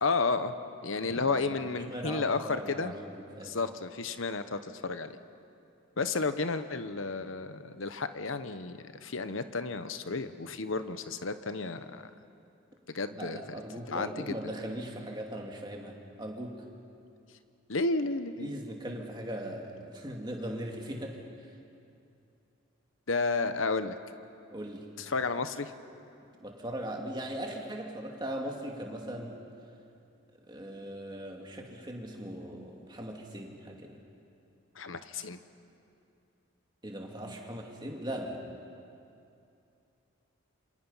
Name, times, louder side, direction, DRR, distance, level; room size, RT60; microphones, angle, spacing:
voice 1, 0.0-0.6 0.8-2.9 3.4-5.1 6.0-12.0 12.9-13.4 13.9-14.5 17.7-18.5 23.1-24.0 25.0-25.7 34.8-35.4, left 3 dB, 70° left, 10 dB, 1.0 m, -32 dB
voice 2, 1.2-3.6 13.1-16.6 18.4-21.2 24.5-24.9 26.4-29.4 30.5-34.0 36.8-38.4, right 1 dB, 20° right, 0 dB, 2.4 m, -39 dB
28.0 x 26.0 x 5.7 m, 2.6 s
head